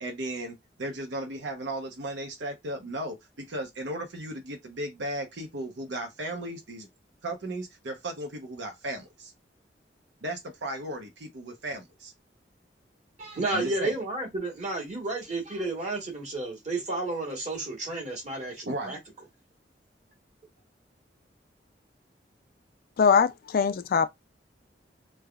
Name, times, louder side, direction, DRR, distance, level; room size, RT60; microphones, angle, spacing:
voice 1, 0.0-6.9 7.2-9.3 10.2-12.1 13.5-13.9 18.7-18.9, right 1 dB, 90° right, 0.8 m, -35 dB
voice 2, 13.2-19.0, right 2 dB, 40° right, 1.4 m, -32 dB
voice 3, 23.0-24.1, left 6 dB, 55° left, 0.4 m, -22 dB
3.3 x 2.3 x 2.3 m
head